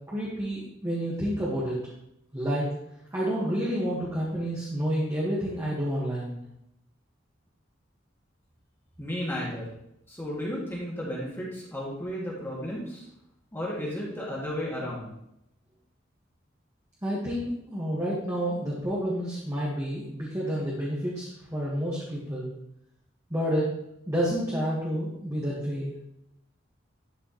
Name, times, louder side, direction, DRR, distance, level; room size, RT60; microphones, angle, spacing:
voice 1, 0.1-1.8 2.3-2.6 3.1-6.4 17.0-22.5 23.3-23.7 24.1-26.0, equal, 15° right, -7 dB, 1.6 m, -29 dB
voice 2, 9.0-9.7 10.1-13.1 13.5-15.1, equal, 10° left, -6 dB, 2.0 m, -33 dB
12.0 x 4.8 x 3.1 m, 0.80 s
head